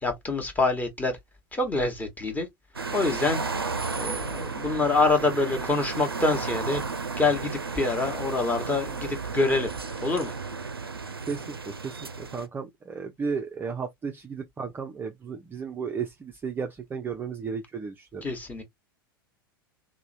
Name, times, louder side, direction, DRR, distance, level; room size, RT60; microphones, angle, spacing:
voice 1, 0.0-1.2 1.5-2.5 2.9-3.4 3.9-6.8 7.2-9.7 10.0-10.3 18.2-18.6, left 3 dB, 15° left, 1.0 m, -26 dB
sound 1, 2.7-12.5, right 4 dB, 90° right, 0.4 m, -33 dB
voice 2, 11.3-18.3, right 5 dB, 15° right, 0.4 m, -34 dB
2.9 x 2.0 x 2.6 m
figure-of-eight pair, 85°, 12 cm